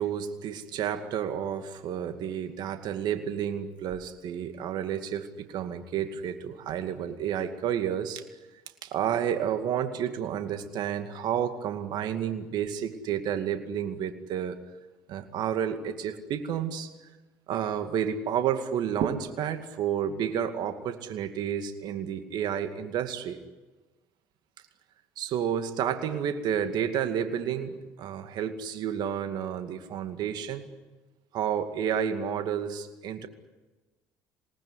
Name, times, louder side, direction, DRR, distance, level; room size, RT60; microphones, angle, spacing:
voice 1, 0.0-8.2 8.8-14.6 15.1-16.9 17.5-23.4 25.2-30.7 31.3-33.3, right 9 dB, 65° right, 8 dB, 2.3 m, -30 dB
27.0 x 19.5 x 9.9 m, 1.2 s
supercardioid pair, 75°, 8 cm